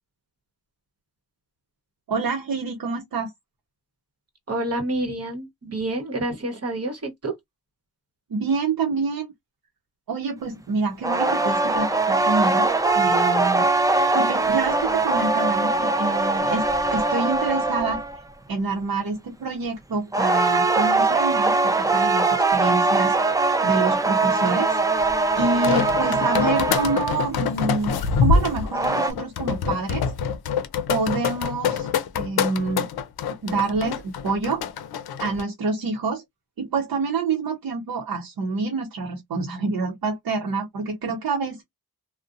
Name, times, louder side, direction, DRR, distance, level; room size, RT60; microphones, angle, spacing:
voice 1, 2.1-3.3 8.3-9.3 10.1-13.7 14.1-16.6 16.9-18.0 18.5-23.2 23.6-24.8 25.3-30.1 30.9-31.9 32.1-32.9 33.4-34.7 35.2-36.2 36.6-41.6, right 4 dB, 70° right, 0.8 m, -27 dB
voice 2, 4.5-7.4, right 1 dB, 40° right, 1.0 m, -28 dB
sound 1, 11.0-18.2 20.1-27.2 28.5-29.1, right 3 dB, 10° right, 0.4 m, -21 dB
sound 2, 25.4-35.4, left 6 dB, 85° left, 0.5 m, -25 dB
2.6 x 2.1 x 2.4 m
cardioid pair, 85°, 37 cm